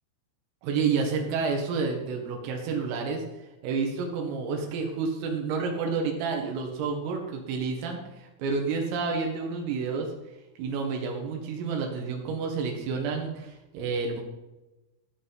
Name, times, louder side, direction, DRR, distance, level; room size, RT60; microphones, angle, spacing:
voice 1, 0.6-3.2 3.6-10.1 10.6-14.2, right 5 dB, 85° right, 2 dB, 4.4 m, -29 dB
15.0 x 8.2 x 5.9 m, 1.0 s
omnidirectional pair, 5.8 m